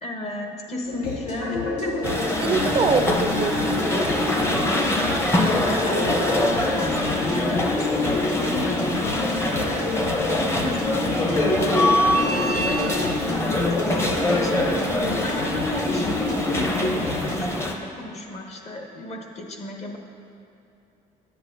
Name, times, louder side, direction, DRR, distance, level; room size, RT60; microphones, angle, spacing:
voice 1, 0.0-2.6 5.6-9.4 9.6-10.1 10.5-11.1 11.9-14.6 15.1-20.0, left 1 dB, 40° left, 2 dB, 1.0 m, -34 dB
sound 1, 0.9-17.4, left 3 dB, 75° left, 1.3 m, -29 dB
sound 2, 2.0-17.7, left 1 dB, 15° left, 0.7 m, -24 dB
voice 2, 2.4-5.0, right 4 dB, 30° right, 6 dB, 0.4 m, -26 dB
9.8 x 8.0 x 2.7 m, 2.8 s
cardioid pair, 110°, 17 cm